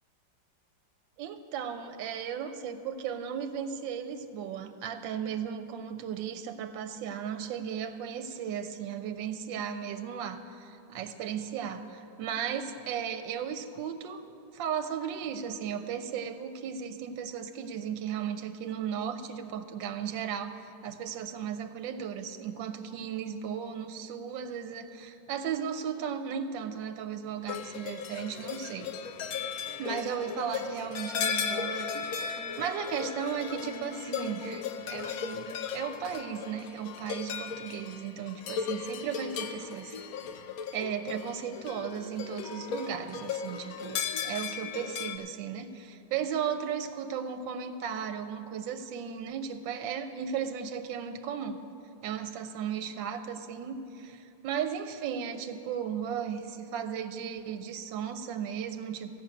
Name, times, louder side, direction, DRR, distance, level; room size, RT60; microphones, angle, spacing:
voice 1, 1.2-14.2 14.5-20.5 20.8-28.9 29.8-34.6 34.9-39.9 40.7-51.6 52.0-59.2, right 8 dB, 85° right, 8 dB, 1.3 m, -35 dB
sound 1, 27.5-45.2, left 6 dB, 65° left, 0.9 m, -36 dB
13.5 x 6.3 x 8.9 m, 2.7 s
omnidirectional pair, 2.0 m